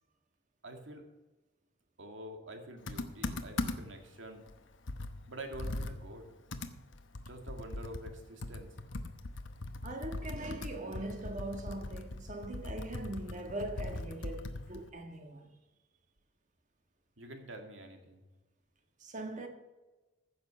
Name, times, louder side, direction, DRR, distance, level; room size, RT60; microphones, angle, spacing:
voice 1, 0.6-1.1 2.0-4.5 5.3-6.3 7.2-8.7 17.2-18.2, right 1 dB, 90° right, 2.1 m, -47 dB
Computer keyboard, 2.9-4.0 4.5-4.6 4.9-8.2 8.4-14.9, left 2 dB, 90° left, 1.0 m, -40 dB
voice 2, 9.8-15.5 19.0-19.5, right 1 dB, 40° right, 1.7 m, -41 dB
15.0 x 6.7 x 5.6 m
head